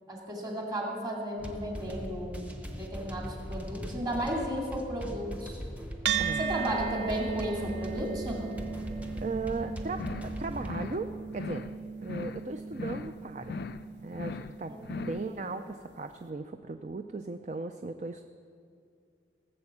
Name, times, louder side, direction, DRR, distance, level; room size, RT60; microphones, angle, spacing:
voice 1, 0.1-2.4 2.7-5.6 6.4-8.6 14.7-15.4, equal, 25° right, -2 dB, 2.5 m, -34 dB
sound 1, 1.4-10.8, equal, 10° right, 0.9 m, -40 dB
sound 2, 6.1-14.7, right 6 dB, 80° right, 0.7 m, -36 dB
voice 2, 6.2-6.5 9.2-11.7 12.0-13.6 14.0-18.2, right 3 dB, 40° right, 7 dB, 0.4 m, -37 dB
sound 3, 9.9-10.4 10.6-11.1 11.3-11.8 12.0-12.5 12.7-13.2 13.4-13.9 14.1-14.6 14.8-15.3, left 4 dB, 65° left, 0.4 m, -39 dB
17.5 x 7.7 x 7.2 m, 2.4 s
head